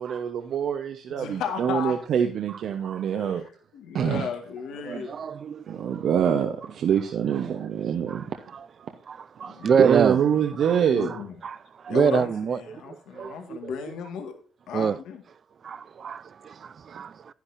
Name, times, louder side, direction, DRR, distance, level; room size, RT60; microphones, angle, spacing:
voice 1, 0.0-3.4 3.9-4.3 5.7-8.4 8.8-8.9 9.8-11.1, right 8 dB, 70° right, 1.0 m, -25 dB
voice 2, 1.1-2.0 3.1-5.2 9.4-9.7 10.9-11.4 11.9-14.3 14.7-15.2, left 7 dB, 85° left, 1.9 m, -34 dB
voice 3, 4.8-6.1 8.1-8.2 8.5-8.6 9.1-10.2 10.6-10.8 11.4-11.6 11.8-13.7 14.7-15.0 15.6-17.3, right 6 dB, 50° right, 0.5 m, -27 dB
10.5 x 10.0 x 2.7 m
cardioid pair, 90°, 0 cm